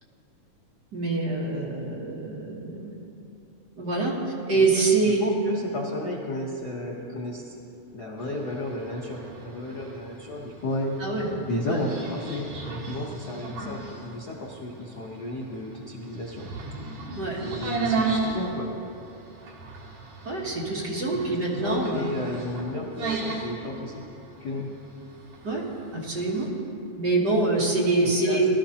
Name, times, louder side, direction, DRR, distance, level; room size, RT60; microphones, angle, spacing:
voice 1, 0.9-2.9 3.8-4.2 4.5-5.2 11.0-11.3 11.7-11.8 17.2-17.4 20.2-22.1 25.4-25.6 25.9-26.5 27.0-28.5, right 3 dB, 45° right, -3 dB, 1.5 m, -25 dB
voice 2, 5.2-7.6 7.9-11.0 11.5-12.5 12.8-16.5 17.4-18.7 21.3-24.1 24.4-24.7 28.2-28.4, left 1 dB, 85° left, -3 dB, 0.8 m, -33 dB
sound 1, 8.2-26.5, right 3 dB, 65° right, 2.8 m, -35 dB
18.5 x 12.0 x 2.9 m, 2.8 s
omnidirectional pair, 3.5 m